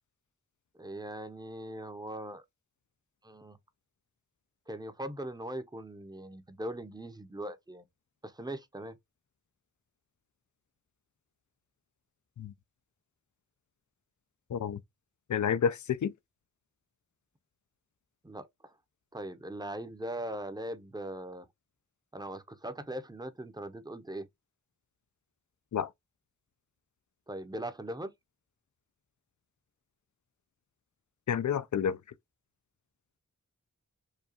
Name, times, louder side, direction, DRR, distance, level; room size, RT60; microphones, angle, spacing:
voice 1, 0.8-2.4 3.2-3.6 4.7-7.8 8.2-9.0 18.2-18.7 19.1-21.5 22.1-24.3 27.3-28.1, right 1 dB, 10° right, 0.7 m, -40 dB
voice 2, 14.5-14.8 15.3-16.1 25.7-25.9 31.3-32.0, left 7 dB, 65° left, 0.4 m, -29 dB
4.8 x 2.3 x 2.8 m
cardioid pair, 40°, 33 cm